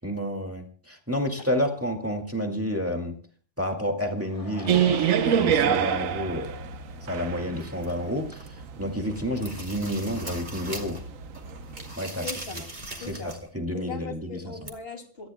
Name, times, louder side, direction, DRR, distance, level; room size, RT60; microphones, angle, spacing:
voice 1, 0.0-3.1 3.6-6.7 7.0-8.5 8.8-11.0 12.0-12.2 13.1-14.4, equal, 10° right, 3 dB, 2.1 m, -30 dB
Laughter / Crowd, 4.0-7.4 7.8-7.9 8.4-8.5 8.7-8.8, left 1 dB, 25° left, 3.4 m, -43 dB
sound 1, 4.7-11.9, right 8 dB, 70° right, 1.2 m, -27 dB
sound 2, 7.6-8.6 9.0-11.1 11.3-13.5 13.8-13.9 14.7-14.8, right 2 dB, 35° right, 2.8 m, -40 dB
voice 2, 12.2-12.7 13.0-13.4 13.7-15.3, left 4 dB, 45° left, 3 dB, 2.8 m, -39 dB
28.0 x 14.0 x 2.2 m, 0.40 s
omnidirectional pair, 1.5 m